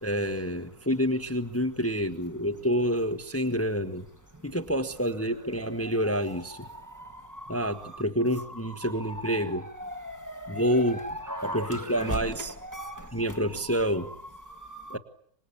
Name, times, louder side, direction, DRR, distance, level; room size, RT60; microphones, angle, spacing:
voice 1, 0.0-4.1 4.4-6.7 7.5-9.6 10.5-11.0 11.4-12.5 13.1-14.1 14.9-15.0, equal, 10° left, 1.3 m, -28 dB
voice 2, 5.7-8.0 8.3-15.0, equal, 10° right, 1.5 m, -39 dB
26.0 x 21.0 x 8.6 m
omnidirectional pair, 1.7 m